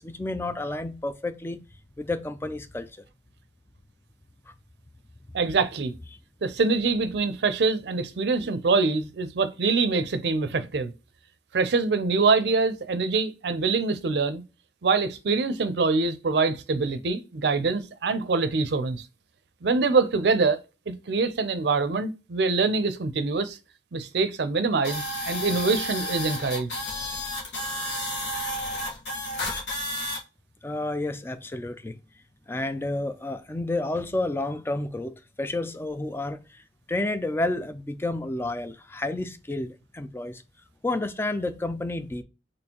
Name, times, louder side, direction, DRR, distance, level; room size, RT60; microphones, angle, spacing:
voice 1, 0.0-1.6 2.0-2.9 30.6-32.0 32.5-36.6 36.9-40.4 40.8-42.2, left 2 dB, 15° left, 0.4 m, -30 dB
voice 2, 5.3-5.9 6.4-10.9 11.5-14.4 14.8-19.0 19.6-20.6 20.9-23.6 23.9-26.7, right 4 dB, 65° right, 0.5 m, -24 dB
sound 1, 24.8-30.2, left 1 dB, 90° left, 1.4 m, -31 dB
4.3 x 3.0 x 2.9 m
head